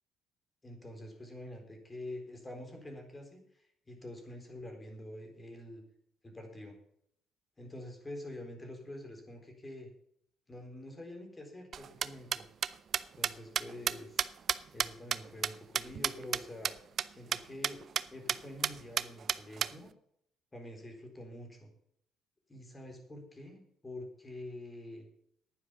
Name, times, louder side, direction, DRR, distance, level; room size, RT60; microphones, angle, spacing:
voice 1, 0.6-5.8 6.2-6.7 7.6-9.9 10.5-12.4 13.2-14.3 14.7-16.7 17.1-17.8 18.1-19.9 20.5-21.7 22.5-25.1, left 1 dB, 20° left, 3 dB, 3.9 m, -46 dB
sound 1, 11.7-16.4 16.6-16.7 17.0-17.1 17.3-17.4 17.6-18.0 18.3-18.4 18.6-19.7, right 8 dB, 50° right, 0.5 m, -31 dB
10.5 x 9.7 x 6.7 m, 0.69 s
cardioid pair, 110°, 0 cm